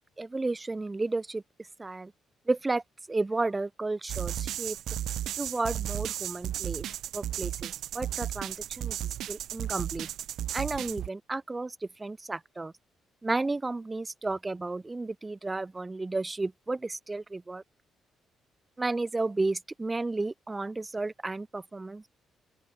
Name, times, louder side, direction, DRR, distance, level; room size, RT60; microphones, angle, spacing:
voice 1, 0.2-1.4 1.8-2.1 2.5-2.8 3.1-4.8 5.4-6.8 7.1-9.0 9.3-10.1 10.5-12.7 13.2-17.6 18.8-22.1, right 3 dB, 20° right, 1.9 m, -32 dB
sound 1, 4.1-11.1, right 12 dB, 75° right, 0.9 m, -34 dB
open air
cardioid pair, 90°, 0 cm